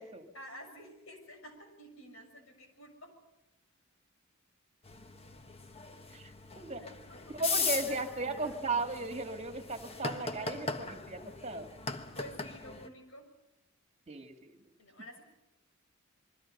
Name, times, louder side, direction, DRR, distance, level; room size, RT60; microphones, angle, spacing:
voice 1, 0.3-3.1 6.6-7.4 7.7-8.0 8.3-8.7 12.1-13.2 14.8-15.2, equal, 80° left, 5 dB, 6.6 m, -51 dB
sound 1, 4.9-12.9, left 4 dB, 30° left, 1.3 m, -39 dB
voice 2, 6.1-6.8 7.3-11.7 14.1-14.6, right 3 dB, 35° right, 5 dB, 2.1 m, -36 dB
27.5 x 22.5 x 6.7 m, 0.96 s
head